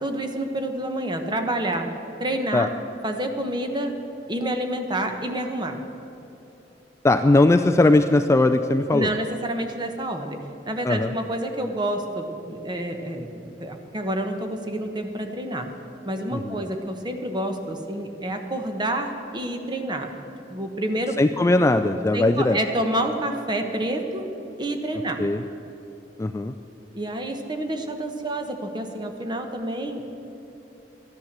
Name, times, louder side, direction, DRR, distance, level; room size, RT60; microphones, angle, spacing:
voice 1, 0.0-1.9 2.2-2.7 3.0-4.0 4.3-5.8 8.9-10.4 10.7-15.7 16.0-20.1 20.5-21.2 22.1-24.3 24.6-25.2 26.9-30.0, right 1 dB, 25° right, 5 dB, 1.1 m, -28 dB
voice 2, 7.0-9.1 10.8-11.1 16.3-16.6 21.2-22.6 25.2-25.4 26.2-26.5, left 2 dB, 15° left, 8 dB, 0.3 m, -19 dB
13.0 x 10.5 x 7.4 m, 3.0 s
head